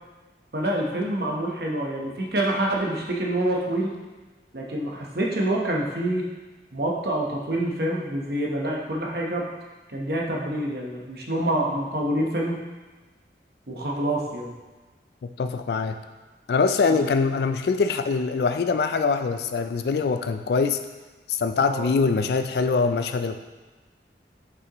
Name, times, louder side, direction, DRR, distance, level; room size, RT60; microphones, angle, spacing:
voice 1, 0.5-3.9 4.5-6.3 6.7-9.5 9.9-12.6 13.7-14.5 16.9-17.0 21.7-21.9, right 1 dB, 60° right, -1 dB, 1.0 m, -26 dB
voice 2, 15.4-16.0 16.5-20.8 21.3-23.4, left 4 dB, 65° left, 8 dB, 0.3 m, -23 dB
6.3 x 5.8 x 3.0 m, 1.3 s
head